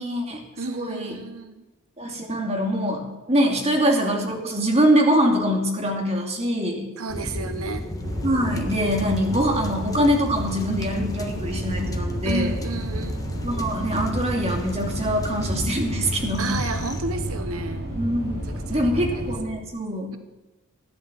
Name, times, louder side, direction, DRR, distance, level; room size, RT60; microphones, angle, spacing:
voice 1, 0.0-0.4 0.7-1.2 2.0-6.9 8.2-12.5 13.4-16.6 17.9-18.4 18.7-20.2, equal, 30° right, 2 dB, 2.7 m, -23 dB
voice 2, 0.6-1.6 3.7-4.0 7.0-7.8 12.2-13.7 16.4-17.8 18.4-19.3, right 3 dB, 90° right, 9 dB, 1.1 m, -32 dB
sound 1, 7.1-17.0, left 1 dB, 15° left, 1.4 m, -34 dB
sound 2, 8.0-19.4, right 1 dB, 55° right, 5.4 m, -31 dB
16.0 x 11.0 x 7.6 m, 1.0 s
head